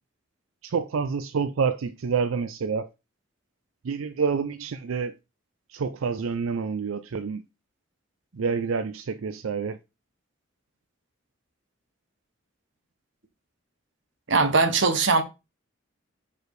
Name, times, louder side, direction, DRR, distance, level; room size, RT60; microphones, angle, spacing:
voice 1, 0.6-2.9 3.8-5.1 5.7-7.4 8.4-9.8, right 5 dB, 90° right, 0.4 m, -28 dB
voice 2, 14.3-15.2, right 4 dB, 65° right, 1.0 m, -20 dB
4.9 x 4.7 x 4.6 m
head